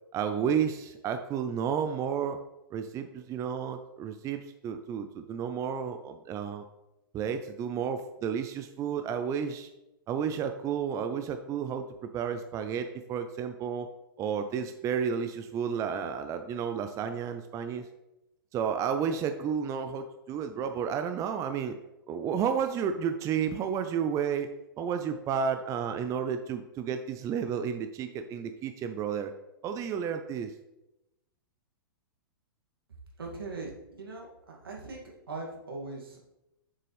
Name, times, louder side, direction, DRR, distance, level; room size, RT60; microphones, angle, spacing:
voice 1, 0.1-2.4 2.7-6.6 7.1-9.7 10.1-11.8 12.1-13.9 14.2-17.9 18.5-21.8 22.1-24.5 24.8-29.3 29.6-30.5, right 7 dB, 25° right, 8 dB, 0.5 m, -31 dB
voice 2, 33.2-35.0 35.3-36.2, right 3 dB, 85° right, -2 dB, 2.4 m, -40 dB
7.2 x 6.6 x 3.4 m, 0.93 s
hypercardioid pair, 110°, 12 cm